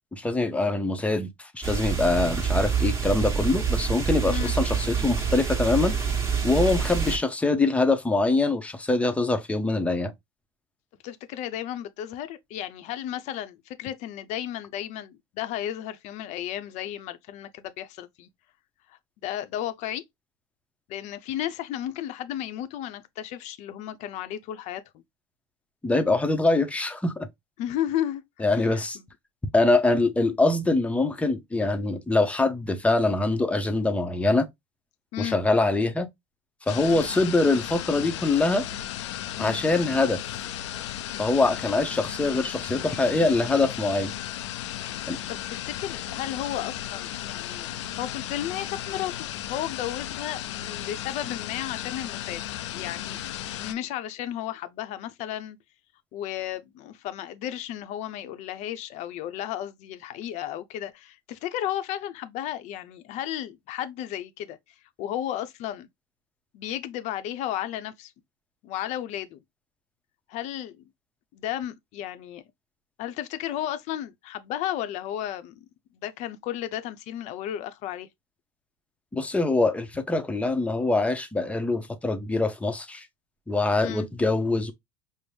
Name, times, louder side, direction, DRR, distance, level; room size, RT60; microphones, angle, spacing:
voice 1, 0.1-5.9 6.4-10.1 25.8-27.3 28.4-29.0 29.5-34.5 35.2-36.1 36.7-38.6 39.4-40.2 41.2-44.1 45.1-45.2 79.1-83.1 83.5-84.7, left 2 dB, 10° left, 0.7 m, -24 dB
sound 1, 1.6-7.2, right 6 dB, 20° right, 1.2 m, -26 dB
voice 2, 11.0-18.3 18.9-20.0 20.9-25.0 27.6-29.0 35.1-35.4 39.4-39.6 44.9-47.7 48.0-52.4 52.7-53.2 53.6-55.6 56.1-64.6 65.0-65.9 66.5-68.1 68.6-69.4 70.3-70.9 71.3-72.4 73.0-75.6 75.9-78.1 83.8-84.1, left 11 dB, 55° left, 0.6 m, -34 dB
sound 2, 36.7-53.7, left 12 dB, 90° left, 0.4 m, -35 dB
5.2 x 2.0 x 3.2 m
supercardioid pair, 110°, 14 cm